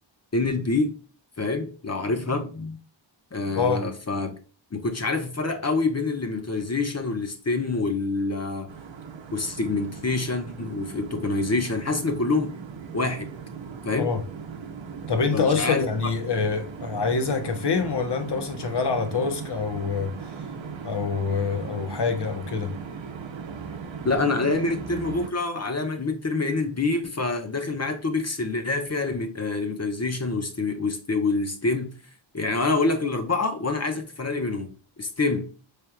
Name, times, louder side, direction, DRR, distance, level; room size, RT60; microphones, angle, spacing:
voice 1, 0.3-1.0 1.4-2.8 3.3-4.3 4.7-8.7 9.3-12.6 12.9-13.3 13.8-14.1 15.3-15.9 24.0-32.0 32.3-35.5, left 3 dB, 35° left, 0.7 m, -26 dB
voice 2, 3.5-3.9 14.0-14.2 15.1-20.1 20.8-22.7, left 5 dB, 60° left, 1.0 m, -26 dB
sound 1, 8.7-25.3, right 6 dB, 70° right, 0.8 m, -38 dB
4.4 x 3.3 x 2.2 m
wide cardioid pair, 70°, 47 cm